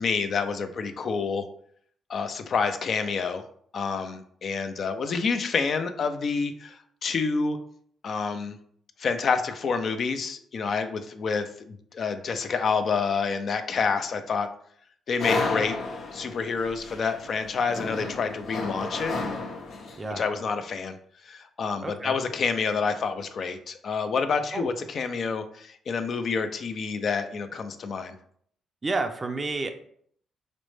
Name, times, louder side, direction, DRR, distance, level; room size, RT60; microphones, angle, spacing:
voice 1, 0.0-1.5 2.1-3.4 3.7-7.6 8.0-8.6 9.0-14.5 15.1-15.8 16.1-19.1 20.1-21.0 21.2-28.1, left 5 dB, 50° left, 9 dB, 0.4 m, -28 dB
sound 1, 15.2-20.1, left 3 dB, 75° left, 0.7 m, -32 dB
voice 2, 21.8-22.1 24.5-24.7 28.8-29.7, right 3 dB, 25° right, 6 dB, 0.4 m, -30 dB
5.0 x 2.1 x 3.1 m, 0.63 s
cardioid pair, 90°, 0 cm